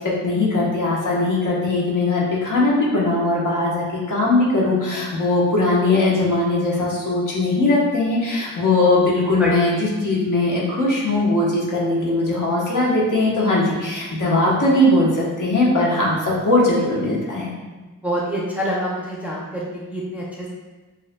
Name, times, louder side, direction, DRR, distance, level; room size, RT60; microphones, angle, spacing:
voice 1, 0.2-17.5, left 2 dB, 60° left, -5 dB, 1.2 m, -20 dB
voice 2, 17.8-20.5, equal, 5° right, -5 dB, 0.5 m, -26 dB
7.1 x 2.6 x 2.2 m, 1.2 s
wide cardioid pair, 160°, 35 cm